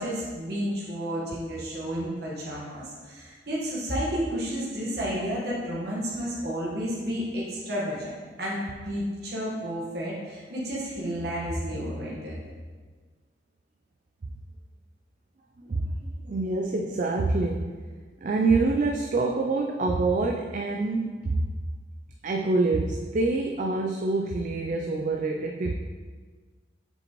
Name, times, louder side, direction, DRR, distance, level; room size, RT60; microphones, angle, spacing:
voice 1, 0.0-12.4, equal, 60° right, -6 dB, 1.4 m, -31 dB
voice 2, 15.6-17.7 18.2-21.5 22.2-25.7, right 3 dB, 45° right, 2 dB, 0.4 m, -26 dB
7.2 x 5.2 x 3.0 m, 1.5 s
head